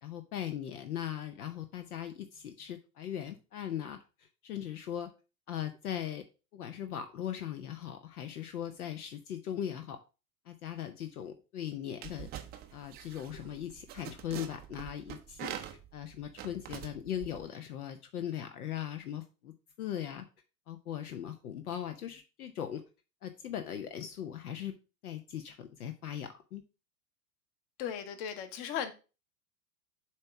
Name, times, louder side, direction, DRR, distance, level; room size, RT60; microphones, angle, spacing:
voice 1, 0.0-5.1 5.5-6.2 6.5-10.0 10.5-12.3 12.7-15.7 15.9-20.3 20.7-22.8 23.2-24.7 25.0-26.6, left 10 dB, 65° left, 0.8 m, -39 dB
sound 1, 12.0-17.5, right 11 dB, 20° right, 0.5 m, -45 dB
voice 2, 27.8-28.9, left 8 dB, 40° left, 1.1 m, -36 dB
7.4 x 3.0 x 4.6 m
figure-of-eight pair, 95°, 47 cm